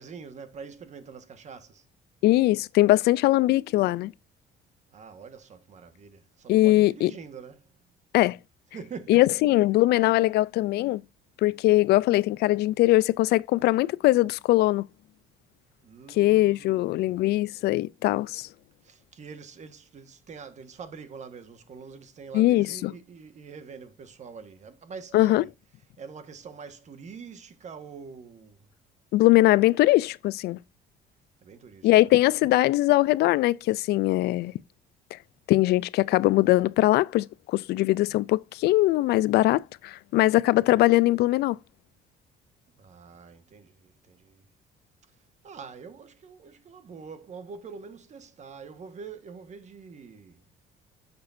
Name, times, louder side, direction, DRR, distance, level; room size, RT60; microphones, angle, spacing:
voice 1, 0.0-1.8 4.9-7.7 8.7-9.4 15.8-17.3 18.8-25.5 26.0-28.7 31.4-32.1 42.7-44.5 45.1-45.2 45.4-50.4, right 5 dB, 45° right, 1.4 m, -44 dB
voice 2, 2.2-4.1 6.5-7.1 8.1-8.4 9.1-11.0 11.4-14.8 16.1-18.5 22.3-22.9 25.1-25.4 29.1-30.6 31.8-34.5 35.1-35.2 35.5-41.6, left 17 dB, 75° left, 0.4 m, -21 dB
10.0 x 6.8 x 2.6 m
cardioid pair, 110°, 17 cm